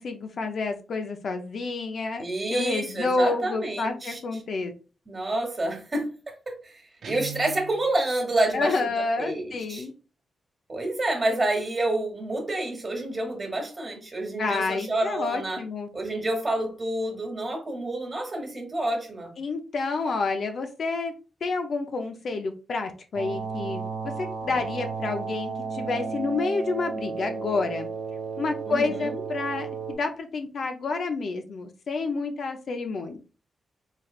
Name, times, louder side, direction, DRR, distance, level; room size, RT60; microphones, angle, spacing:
voice 1, 0.0-2.2 2.5-4.7 8.5-9.9 14.4-15.9 19.4-21.1 21.4-27.9 28.4-33.2, left 3 dB, 55° left, 5 dB, 0.6 m, -29 dB
voice 2, 2.2-4.2 5.1-9.9 10.7-15.6 15.9-19.3 28.7-29.2, right 2 dB, 30° right, 2 dB, 1.3 m, -29 dB
Guitar, 7.0-7.8, right 8 dB, 65° right, 0.5 m, -38 dB
sound 1, 23.1-29.9, right 5 dB, 80° right, 1.2 m, -33 dB
4.1 x 3.2 x 2.4 m, 0.34 s
wide cardioid pair, 125°, 0 cm